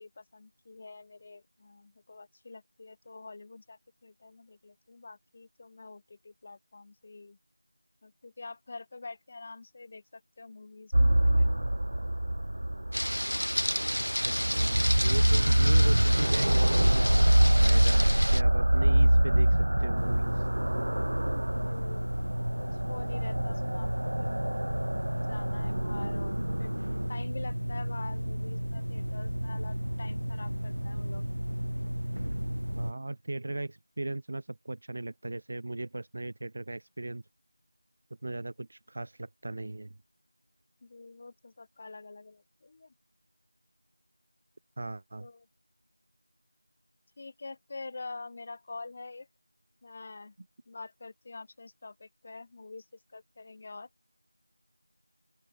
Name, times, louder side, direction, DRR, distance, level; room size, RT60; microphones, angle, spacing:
voice 1, 0.0-7.4 8.0-11.7 21.6-22.1 22.6-24.3 25.1-26.7 27.1-31.2 40.8-42.9 45.2-45.5 47.2-49.3 49.8-50.3 50.7-52.9 53.1-53.9, left 3 dB, 20° left, 2.6 m, -46 dB
sound 1, 10.9-27.2, right 1 dB, 55° right, 0.8 m, -25 dB
sound 2, 12.9-18.4, equal, 80° left, 2.7 m, -32 dB
voice 2, 14.2-17.1 17.6-20.5 32.7-37.2 38.2-39.9 44.8-45.3, right 2 dB, 30° right, 2.8 m, -37 dB
sound 3, 20.0-32.9, equal, 80° right, 2.3 m, -33 dB
open air
figure-of-eight pair, 175°, 0 cm